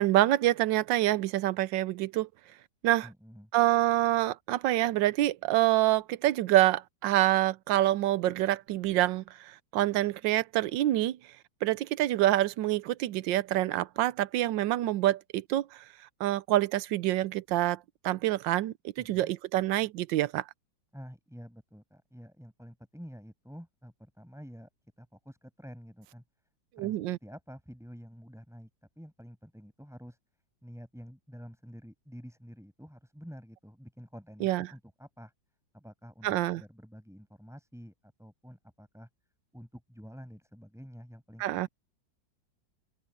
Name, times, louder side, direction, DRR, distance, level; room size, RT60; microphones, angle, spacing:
voice 1, 0.0-2.3 2.8-3.1 3.5-11.2 11.6-15.8 16.2-20.4 26.8-27.2 34.4-34.7 36.2-36.6 41.4-41.7, right 15 dB, 90° right, 1.4 m, -26 dB
voice 2, 3.0-3.5 19.0-19.3 20.9-24.7 25.0-26.2 26.8-28.7 29.0-30.2 30.6-35.3 35.7-39.1 39.5-41.7, equal, ahead, 7.1 m, -49 dB
open air
omnidirectional pair, 1.9 m